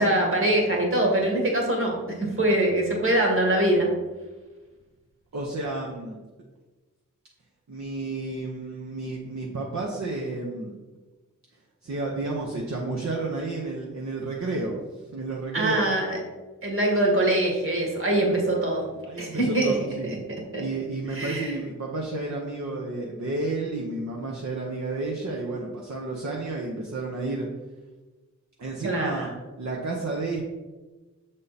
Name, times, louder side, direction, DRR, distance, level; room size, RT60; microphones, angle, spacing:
voice 1, 0.0-3.9 15.5-16.2 16.6-18.8 19.2-19.7 20.0-20.2 20.5-20.6 21.1-21.6 28.8-29.3, right 1 dB, 40° right, -1 dB, 1.7 m, -23 dB
voice 2, 5.3-6.2 7.7-10.7 11.8-14.8 15.0-15.8 19.0-20.1 20.6-27.5 28.6-29.3 29.6-30.4, right 2 dB, 60° right, -2 dB, 0.9 m, -31 dB
6.6 x 3.7 x 4.1 m, 1.2 s
wide cardioid pair, 75°, 31 cm